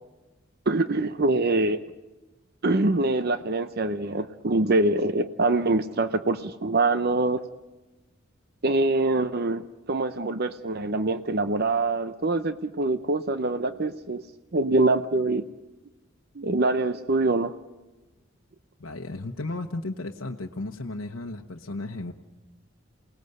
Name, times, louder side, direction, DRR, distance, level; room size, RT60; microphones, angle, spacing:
voice 1, 0.7-1.8 2.6-7.4 8.6-14.2 14.5-15.4 16.4-17.5, right 2 dB, 50° right, 11 dB, 0.8 m, -24 dB
voice 2, 18.8-22.1, left 2 dB, 85° left, 2 dB, 1.1 m, -34 dB
28.0 x 19.0 x 8.0 m, 1.1 s
head